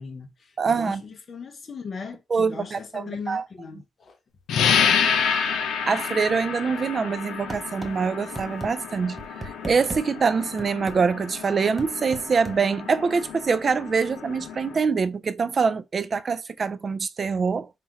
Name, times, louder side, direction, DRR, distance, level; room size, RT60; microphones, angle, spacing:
voice 1, 0.0-4.2, left 5 dB, 40° left, 0.8 m, -38 dB
voice 2, 0.6-1.0 2.3-3.5 5.9-17.7, right 5 dB, 40° right, 0.3 m, -24 dB
sound 1, 4.5-14.8, left 7 dB, 85° left, 0.6 m, -29 dB
sound 2, 7.5-7.9 8.4-8.7 9.2-10.0 10.6-11.0 11.8-12.6, right 2 dB, 20° right, 0.8 m, -35 dB
5.5 x 2.5 x 2.8 m
cardioid pair, 115°, 0 cm